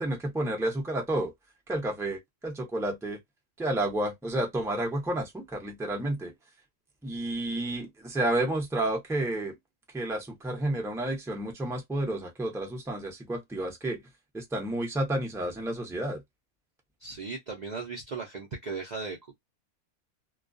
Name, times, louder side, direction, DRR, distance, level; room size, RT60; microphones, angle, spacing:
voice 1, 0.0-1.3 1.7-3.2 3.6-6.3 7.0-9.5 9.9-14.0 14.3-16.2, right 1 dB, 5° right, 0.4 m, -30 dB
voice 2, 17.0-19.4, right 4 dB, 70° right, 0.4 m, -37 dB
2.3 x 2.2 x 2.4 m
omnidirectional pair, 1.6 m